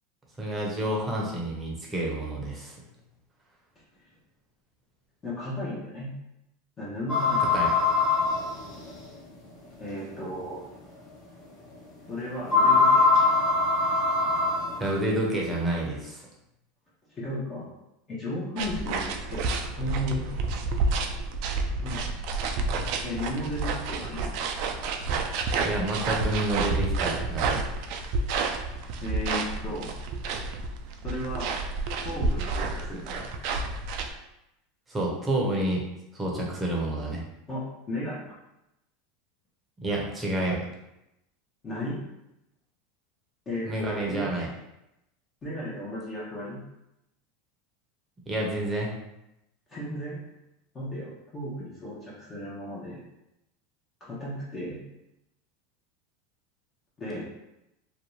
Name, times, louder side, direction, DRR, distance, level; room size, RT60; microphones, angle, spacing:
voice 1, 0.4-2.7 7.5-7.7 14.8-16.3 25.6-27.7 34.9-35.8 36.1-37.2 39.8-40.6 43.6-44.5 48.3-48.9, right 1 dB, 15° right, -2 dB, 0.7 m, -29 dB
voice 2, 5.2-6.1 6.8-7.5 9.8-10.6 12.1-13.4 17.1-17.7 18.1-20.2 21.8-22.1 23.0-24.3 29.0-29.9 31.0-31.6 32.0-33.3 37.5-38.2 41.6-42.0 43.5-44.3 45.4-46.6 49.7-50.2 50.7-53.1 54.0-54.8 57.0-57.2, left 1 dB, 25° left, -7 dB, 0.7 m, -34 dB
sound 1, 7.1-9.1 9.8-9.9 10.5-10.6 12.5-14.9, left 3 dB, 50° left, 1.1 m, -22 dB
sound 2, 18.6-34.1, right 3 dB, 60° right, 0.3 m, -30 dB
2.6 x 2.2 x 3.0 m, 0.88 s
supercardioid pair, 120°, 0 cm